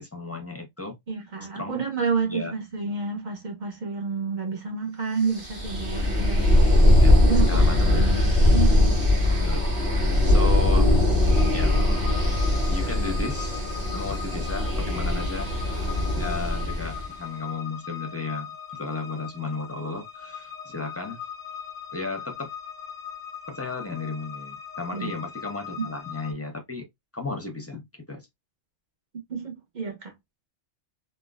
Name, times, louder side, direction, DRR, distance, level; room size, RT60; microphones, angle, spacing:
voice 1, 0.0-1.0 1.5-1.8 2.3-2.5 7.0-7.2 7.5-8.1 9.4-9.6 10.2-10.9 11.5-11.8 12.7-13.7 13.9-15.5 16.1-21.2 21.9-22.5 23.5-26.9 27.1-28.3, left 3 dB, 15° left, 0.6 m, -34 dB
voice 2, 1.1-6.4 6.7-6.8 7.2-8.2 8.5-9.0 24.9-25.1 25.8-25.9 29.3-30.1, right 5 dB, 45° right, 1.1 m, -29 dB
sound 1, 5.3-17.1, left 1 dB, 70° right, 1.8 m, -21 dB
sound 2, 11.3-26.3, left 8 dB, 20° right, 1.2 m, -40 dB
3.7 x 2.6 x 2.3 m
omnidirectional pair, 1.2 m